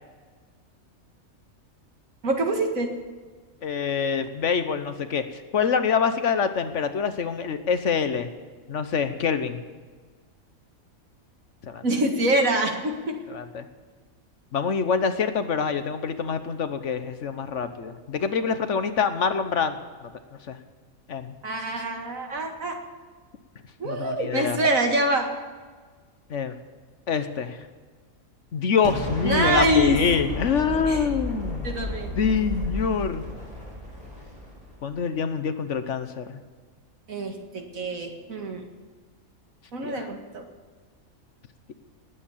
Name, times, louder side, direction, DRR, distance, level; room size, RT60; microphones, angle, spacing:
voice 1, 2.2-2.9 11.8-13.2 21.4-22.8 23.8-25.3 29.2-30.0 30.7-31.1 31.6-32.1 37.1-38.6 39.7-40.4, right 1 dB, 75° right, 3 dB, 2.3 m, -25 dB
voice 2, 3.6-5.2 5.5-8.3 8.7-9.6 11.7-11.8 13.3-13.7 14.5-19.8 20.5-20.6 21.1-21.3 23.8-24.6 26.3-26.5 27.1-27.6 28.5-31.7 32.2-33.2 34.8-36.4 39.8-40.1, left 6 dB, 60° left, 10 dB, 1.2 m, -25 dB
Explosion, 28.8-34.8, left 1 dB, 30° right, 5.3 m, -33 dB
19.5 x 8.9 x 7.3 m, 1.5 s
omnidirectional pair, 1.4 m